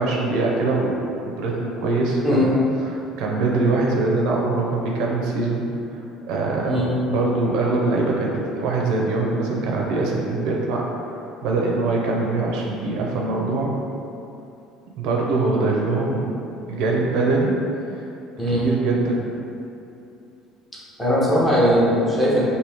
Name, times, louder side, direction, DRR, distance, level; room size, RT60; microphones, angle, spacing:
voice 1, 0.0-2.5 2.9-5.7 6.3-10.9 11.4-13.7 15.0-16.4 16.7-17.6 18.5-19.2, right 3 dB, 60° right, -2 dB, 0.4 m, -23 dB
voice 2, 21.0-22.4, equal, 5° left, -8 dB, 0.6 m, -19 dB
2.9 x 2.6 x 3.4 m, 2.7 s
cardioid pair, 175°, 0 cm